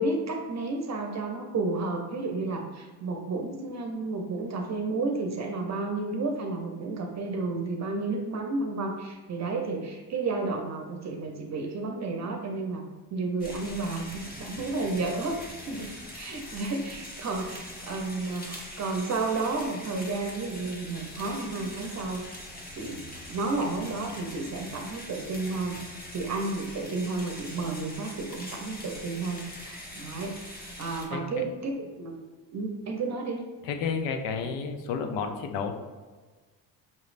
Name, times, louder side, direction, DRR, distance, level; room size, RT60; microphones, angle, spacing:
voice 1, 0.0-12.8 13.1-22.2 22.8-25.8 26.1-30.5 30.8-33.4, right 3 dB, 40° right, 3 dB, 0.6 m, -32 dB
sound 1, 13.4-31.0, left 1 dB, 20° left, 1.0 m, -43 dB
voice 2, 31.1-31.5 33.6-35.7, left 5 dB, 90° left, 6 dB, 0.6 m, -31 dB
5.4 x 3.1 x 2.5 m, 1.3 s
cardioid pair, 90°, 42 cm